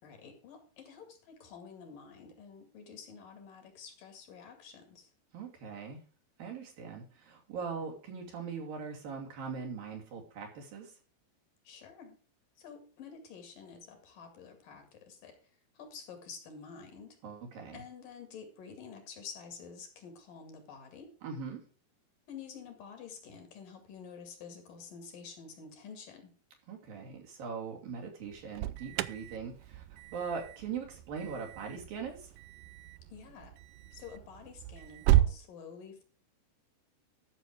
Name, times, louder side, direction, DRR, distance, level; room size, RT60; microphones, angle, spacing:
voice 1, 0.0-5.1 11.7-12.2 12.6-17.2 17.7-21.1 22.3-26.3 33.1-33.6 33.9-36.0, left 6 dB, 60° left, 6 dB, 3.7 m, -49 dB
voice 2, 5.3-6.0 6.4-10.9 17.2-17.8 21.2-21.6 26.7-29.8 30.1-32.3, right 5 dB, 65° right, 1 dB, 4.4 m, -41 dB
Alarm, 28.3-35.4, right 14 dB, 90° right, 1.8 m, -33 dB
13.5 x 6.9 x 4.8 m, 0.38 s
omnidirectional pair, 4.5 m